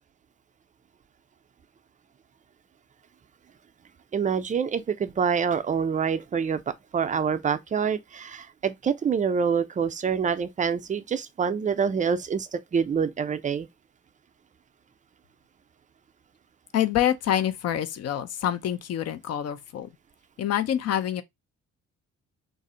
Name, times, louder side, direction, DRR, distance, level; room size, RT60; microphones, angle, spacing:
voice 1, 4.1-13.7, right 6 dB, 25° right, 0.4 m, -26 dB
voice 2, 16.7-19.9 20.4-21.2, left 11 dB, 55° left, 0.5 m, -26 dB
2.6 x 2.0 x 3.7 m
cardioid pair, 90°, 30 cm